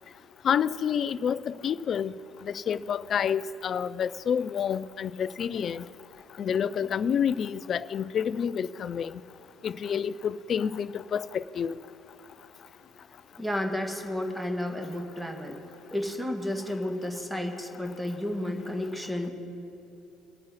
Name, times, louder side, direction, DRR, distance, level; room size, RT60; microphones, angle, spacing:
voice 1, 0.4-2.1 2.5-5.8 6.4-9.1 9.6-11.7, left 8 dB, 40° left, 17 dB, 0.4 m, -28 dB
voice 2, 13.4-15.6 15.9-19.3, left 1 dB, 5° right, 4 dB, 1.7 m, -32 dB
23.0 x 8.6 x 4.0 m, 2.7 s
figure-of-eight pair, 55°, 0 cm